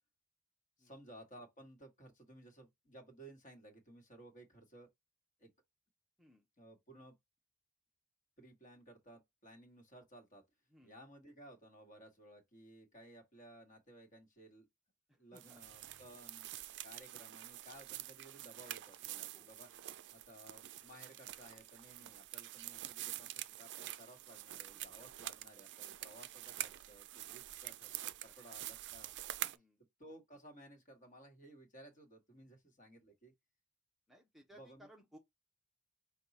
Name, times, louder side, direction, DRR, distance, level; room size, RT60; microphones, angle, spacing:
voice 1, 0.8-4.9 5.4-5.5 6.6-7.1 8.4-10.4 10.8-14.7 15.2-16.5 16.8-29.1 30.0-33.3 34.5-34.9, right 1 dB, 35° left, 1.4 m, -58 dB
voice 2, 15.1-15.6 19.3-19.5 28.3-28.4 29.4-29.8 34.1-35.2, equal, ahead, 0.6 m, -62 dB
sound 1, 15.4-29.6, right 14 dB, 50° right, 0.4 m, -47 dB
5.3 x 2.3 x 4.1 m
head